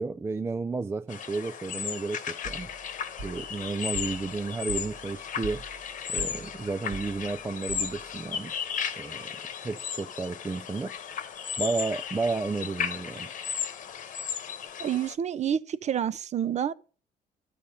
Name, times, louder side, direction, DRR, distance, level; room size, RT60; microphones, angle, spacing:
voice 1, 0.0-2.7 3.2-5.6 6.1-8.5 9.0-9.3 9.6-10.9 11.6-13.3, right 3 dB, 15° right, 0.3 m, -32 dB
sound 1, 1.1-15.1, left 7 dB, 50° left, 1.1 m, -35 dB
sound 2, 2.4-8.3, right 3 dB, 60° right, 2.0 m, -44 dB
voice 2, 14.8-16.7, right 9 dB, 40° right, 0.7 m, -28 dB
12.5 x 5.0 x 5.2 m
cardioid pair, 110°, 17 cm